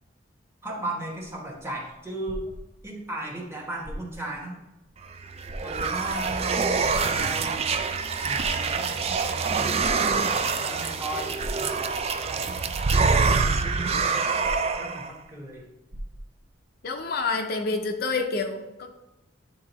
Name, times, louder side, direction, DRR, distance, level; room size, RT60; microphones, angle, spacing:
voice 1, 0.6-2.4 2.8-4.6 5.6-7.7 8.2-12.7 13.4-14.1 14.8-15.7, right 1 dB, 15° right, -1 dB, 1.0 m, -37 dB
sound 1, 1.3-3.1 3.7-4.4 4.8-4.9 5.4-6.1 6.9-7.7 8.2-9.1 9.8-10.5 11.4-12.1 12.6-12.7 12.9-13.7 14.4-15.2 15.5-15.6 15.9-16.5 17.2-17.3, equal, 55° right, 0.9 m, -39 dB
sound 2, 5.1-15.1, right 4 dB, 30° right, 0.3 m, -25 dB
voice 2, 16.8-18.9, left 3 dB, 50° left, 4 dB, 0.5 m, -28 dB
9.3 x 3.6 x 3.0 m, 1.0 s
head